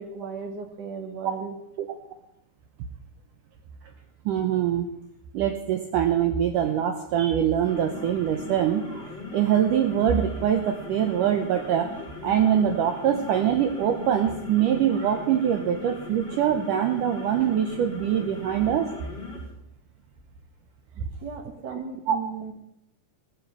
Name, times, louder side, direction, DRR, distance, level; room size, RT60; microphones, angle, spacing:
voice 1, 0.0-1.5 20.9-22.5, right 5 dB, 60° right, 4 dB, 1.1 m, -36 dB
voice 2, 4.3-4.9 5.3-11.9 12.2-18.9 21.0-21.1 22.1-22.2, right 9 dB, 80° right, 5 dB, 1.9 m, -24 dB
sound 1, 7.5-19.5, left 3 dB, 30° left, 5.6 m, -39 dB
17.5 x 9.9 x 5.6 m, 0.82 s
omnidirectional pair, 4.8 m